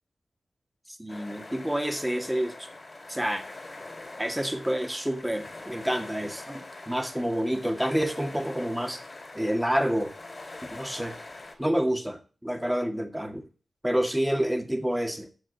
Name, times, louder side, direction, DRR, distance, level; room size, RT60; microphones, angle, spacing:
voice 1, 1.0-2.7 3.1-3.4 4.2-9.0 9.3-10.1 10.7-11.1 11.6-13.4 13.8-15.3, equal, 10° right, 6 dB, 2.1 m, -28 dB
sound 1, 1.1-11.5, left 2 dB, 45° left, 3.6 m, -44 dB
8.4 x 6.3 x 8.1 m, 0.37 s
cardioid pair, 50°, 0 cm